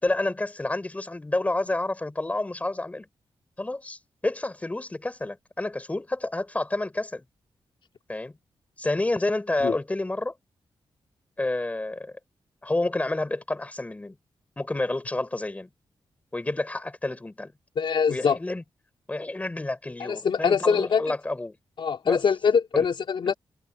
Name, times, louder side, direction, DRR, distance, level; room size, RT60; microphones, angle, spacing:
voice 1, 0.0-3.1 3.6-7.2 8.1-8.4 8.8-10.3 11.4-12.1 12.6-14.1 14.6-15.7 16.3-17.5 18.1-18.6 19.1-21.6 22.0-22.2, left 2 dB, 15° left, 6.5 m, -29 dB
voice 2, 17.8-18.4 20.0-21.0 21.8-23.3, left 6 dB, 60° left, 3.5 m, -23 dB
wide cardioid pair, 170°, 9 cm